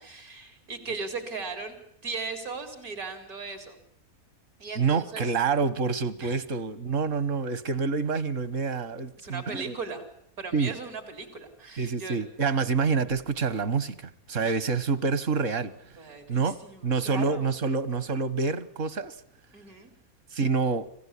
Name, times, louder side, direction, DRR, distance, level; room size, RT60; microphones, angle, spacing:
voice 1, 0.0-1.8 2.0-3.8 4.6-5.3 6.2-6.4 9.2-10.0 10.4-12.2 14.4-14.6 16.0-17.5 19.5-19.9, right 4 dB, 85° right, 8 dB, 4.7 m, -38 dB
voice 2, 4.8-9.8 10.5-10.8 11.8-15.7 16.3-16.6 16.8-19.2 20.3-20.9, right 4 dB, 60° right, 16 dB, 1.7 m, -27 dB
26.0 x 16.0 x 10.0 m, 0.73 s
omnidirectional pair, 1.5 m